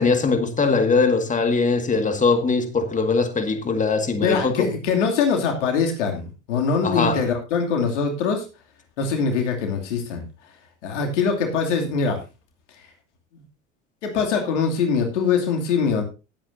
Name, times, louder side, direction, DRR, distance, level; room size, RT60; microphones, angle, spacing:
voice 1, 0.0-4.7 6.8-7.2, left 4 dB, 20° left, 2.0 m, -21 dB
voice 2, 4.2-8.4 9.0-10.3 10.8-12.2 13.3-13.4 14.0-16.0, left 5 dB, 80° left, 2.8 m, -23 dB
19.0 x 8.6 x 2.7 m
hypercardioid pair, 80°, 36 cm